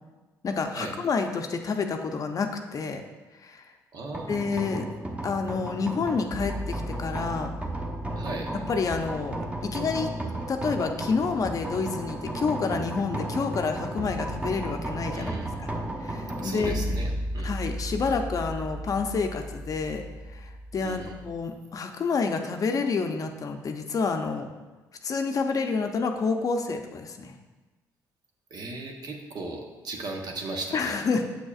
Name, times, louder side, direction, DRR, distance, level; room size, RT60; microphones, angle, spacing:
voice 1, 0.4-3.0 3.4-3.6 4.3-4.9 5.2-7.5 8.7-10.1 10.5-15.3 15.6-15.7 16.0-16.8 17.4-20.0 20.3-24.5 25.0-27.3 30.7-31.2, left 4 dB, 45° left, 5 dB, 0.6 m, -29 dB
voice 2, 3.9-4.5 8.1-8.5 15.1-15.5 16.4-17.5 20.8-21.2 28.5-31.0, right 2 dB, 55° right, 1 dB, 1.0 m, -36 dB
sound 1, 4.1-21.3, right 1 dB, 15° right, 1.0 m, -34 dB
6.9 x 6.2 x 2.4 m, 1.2 s
supercardioid pair, 65°, 8 cm